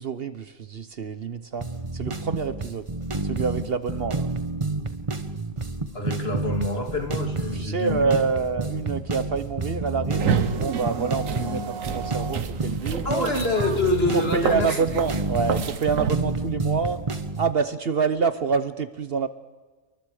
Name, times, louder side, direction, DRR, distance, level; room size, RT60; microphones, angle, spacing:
voice 1, 0.0-1.7 1.9-2.8 3.2-4.3 7.5-13.1 14.1-17.0 17.4-19.3, right 5 dB, 55° right, 12 dB, 1.0 m, -27 dB
sound 1, 1.6-17.5, right 3 dB, 25° right, 1.1 m, -29 dB
voice 2, 5.9-8.2 13.0-14.8, left 2 dB, 50° left, 3 dB, 2.9 m, -26 dB
sound 2, 10.1-16.1, right 7 dB, 80° right, 1.4 m, -30 dB
28.5 x 23.5 x 5.0 m, 1.3 s
omnidirectional pair, 1.3 m